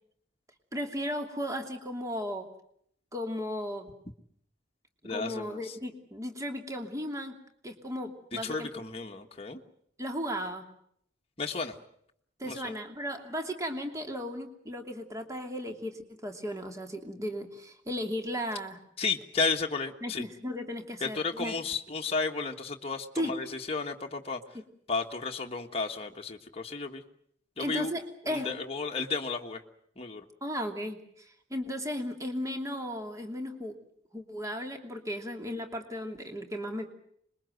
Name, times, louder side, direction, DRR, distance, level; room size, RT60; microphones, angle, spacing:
voice 1, 0.7-2.5 3.1-3.9 5.1-7.4 7.6-8.7 10.0-10.6 12.4-18.8 20.0-21.6 23.2-23.3 27.6-28.5 30.4-33.7 34.1-36.9, equal, 15° right, 4 dB, 2.8 m, -35 dB
voice 2, 5.0-5.8 8.4-9.6 11.4-11.8 12.4-12.7 19.0-20.3 21.0-24.4 24.9-27.0 27.6-27.9 28.2-29.6 30.0-30.2, left 4 dB, 30° left, 2 dB, 1.5 m, -33 dB
25.5 x 22.0 x 7.9 m, 0.69 s
head